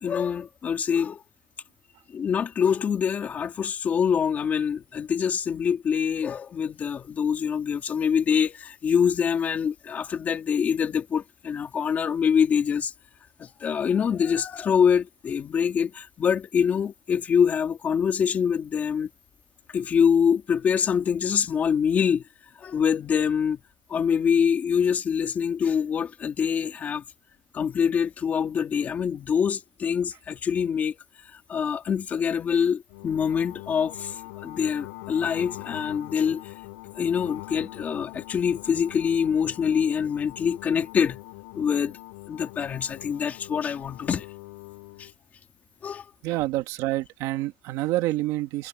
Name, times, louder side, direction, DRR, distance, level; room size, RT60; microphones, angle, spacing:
voice 1, 0.0-1.2 2.1-12.9 13.4-19.1 19.7-22.2 22.6-23.6 23.9-27.0 27.5-31.0 31.3-36.5 37.0-41.2 41.5-42.0 42.3-44.3 45.0-45.1 45.8-46.0, left 7 dB, 25° left, 3.1 m, -25 dB
sound 1, 32.9-45.1, left 26 dB, 85° left, 7.2 m, -42 dB
voice 2, 46.2-48.7, right 17 dB, 50° right, 1.9 m, -27 dB
cardioid pair, 175°, 7 cm